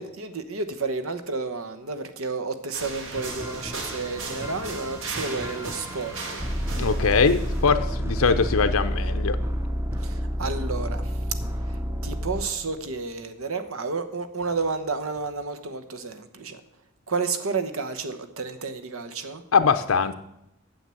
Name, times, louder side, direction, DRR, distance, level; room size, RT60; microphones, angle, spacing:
voice 1, 0.0-6.5 10.0-11.2 11.6-16.6 17.1-19.4, right 4 dB, 80° right, 9 dB, 1.1 m, -31 dB
sound 1, 2.7-7.7, right 3 dB, 65° right, 1.7 m, -37 dB
sound 2, 3.2-12.9 14.4-14.7 15.2-15.3, equal, 10° right, 0.7 m, -30 dB
voice 2, 6.7-9.4 19.5-20.1, left 5 dB, 85° left, 9 dB, 0.7 m, -22 dB
9.0 x 7.4 x 7.6 m, 0.82 s
head